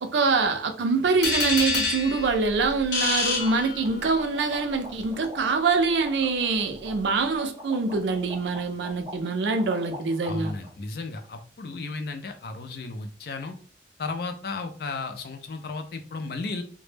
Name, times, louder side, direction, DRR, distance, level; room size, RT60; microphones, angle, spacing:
voice 1, 0.0-10.5, right 4 dB, 85° right, 0.4 m, -25 dB
sound 1, 1.2-4.3, left 3 dB, 85° left, 1.0 m, -27 dB
sound 2, 2.7-2.8 3.0-3.1 3.4-10.7, equal, 25° right, 0.6 m, -43 dB
voice 2, 10.2-13.6 14.0-16.6, left 3 dB, 60° left, 0.4 m, -34 dB
2.1 x 2.0 x 3.2 m
head